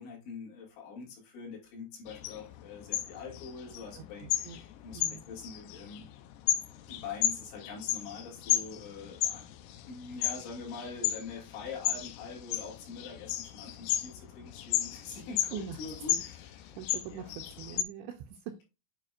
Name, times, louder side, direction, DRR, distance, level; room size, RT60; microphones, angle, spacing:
voice 1, 0.0-6.1 6.9-16.8 17.1-17.3, left 4 dB, 70° left, -1 dB, 4.4 m, -44 dB
sound 1, 2.1-17.8, left 12 dB, 90° left, 3.2 m, -34 dB
voice 2, 4.0-4.6 4.9-5.2 15.5-15.8 16.7-18.6, right 9 dB, 85° right, 5 dB, 2.5 m, -43 dB
9.1 x 4.9 x 2.4 m, 0.27 s
omnidirectional pair, 5.5 m